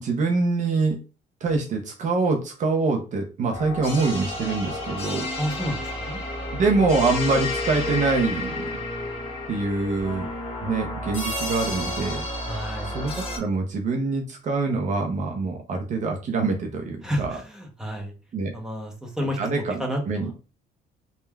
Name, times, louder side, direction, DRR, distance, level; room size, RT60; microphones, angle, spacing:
voice 1, 0.0-1.0 1.4-5.2 6.5-8.7 9.5-10.3 10.6-12.2 12.9-17.4 18.3-18.5 19.4-20.3, right 3 dB, 45° right, 3 dB, 0.5 m, -25 dB
sound 1, 3.5-13.4, left 1 dB, 30° left, 1.0 m, -31 dB
voice 2, 5.4-6.2 12.5-13.0 17.0-18.1 18.5-19.4 19.8-20.3, equal, 5° right, 1 dB, 0.7 m, -30 dB
3.1 x 2.2 x 2.2 m, 0.33 s
cardioid pair, 110°, 17 cm